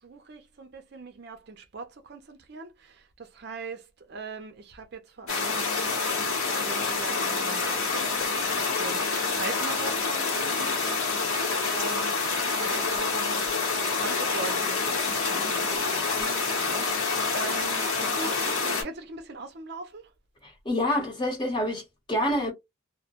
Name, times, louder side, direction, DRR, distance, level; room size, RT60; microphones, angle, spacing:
voice 1, 0.0-11.4 11.7-12.2 12.6-13.4 13.9-20.0, right 3 dB, 50° right, 0.4 m, -41 dB
sound 1, 5.3-18.8, left 4 dB, 85° left, 1.0 m, -27 dB
voice 2, 20.4-22.5, left 1 dB, 20° left, 0.9 m, -27 dB
2.1 x 2.1 x 2.8 m
head